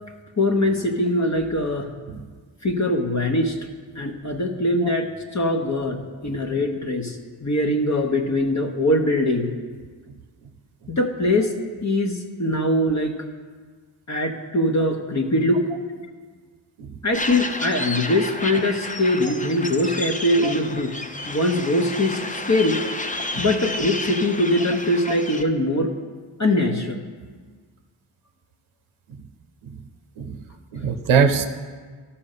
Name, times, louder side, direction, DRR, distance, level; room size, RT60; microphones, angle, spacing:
voice 1, 0.4-1.9 2.6-3.6 4.0-9.5 10.9-11.5 11.8-13.1 14.1-15.7 17.0-21.0 21.3-22.8 23.4-25.9 26.4-27.0, left 1 dB, 35° left, 3 dB, 1.0 m, -22 dB
sound 1, 17.1-25.4, left 2 dB, 15° left, 0.7 m, -31 dB
voice 2, 30.7-31.5, right 6 dB, 85° right, 8 dB, 0.7 m, -22 dB
11.5 x 4.3 x 6.7 m, 1.5 s
cardioid pair, 45°, 47 cm